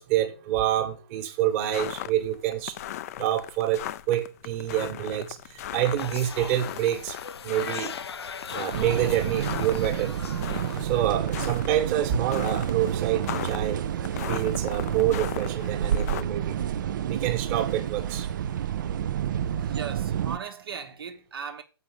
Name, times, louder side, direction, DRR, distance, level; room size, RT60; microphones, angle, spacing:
voice 1, 0.0-2.8 3.2-7.2 7.4-7.9 8.5-10.1 10.8-13.8 14.3-16.7 17.1-18.3, right 12 dB, 30° right, 1.4 m, -27 dB
sound 1, 1.6-16.2, left 12 dB, 35° left, 0.5 m, -37 dB
sound 2, 6.0-11.2, left 6 dB, 85° left, 0.6 m, -39 dB
sound 3, 8.7-20.4, right 10 dB, 50° right, 0.6 m, -29 dB
voice 2, 19.3-21.6, right 6 dB, 65° right, 1.2 m, -38 dB
7.0 x 5.4 x 6.5 m
hypercardioid pair, 140°, 13 cm